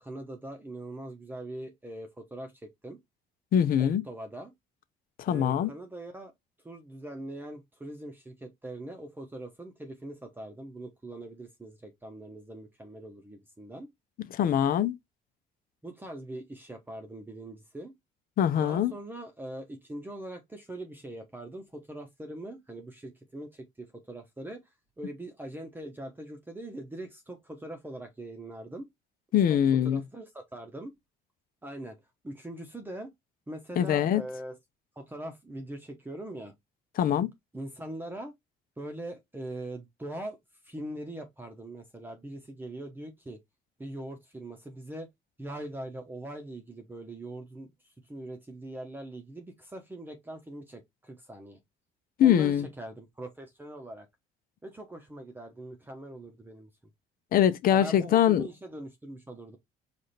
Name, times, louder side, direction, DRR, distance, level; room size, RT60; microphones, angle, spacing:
voice 1, 0.0-3.0 3.8-4.5 5.3-6.3 6.6-13.9 15.8-17.9 18.6-24.6 25.0-28.9 29.5-30.9 31.6-32.0 32.2-33.1 33.5-34.6 35.0-36.5 37.5-38.3 38.8-40.4 40.6-43.4 43.8-45.1 45.4-47.7 48.1-51.6 52.2-54.1 54.6-56.7 57.7-59.6, right 1 dB, 10° right, 0.9 m, -42 dB
voice 2, 3.5-4.0 5.2-5.7 14.3-15.0 18.4-18.9 29.3-30.0 33.8-34.2 37.0-37.3 52.2-52.7 57.3-58.4, left 10 dB, 60° left, 0.7 m, -23 dB
4.9 x 2.5 x 4.1 m
cardioid pair, 110°, 17 cm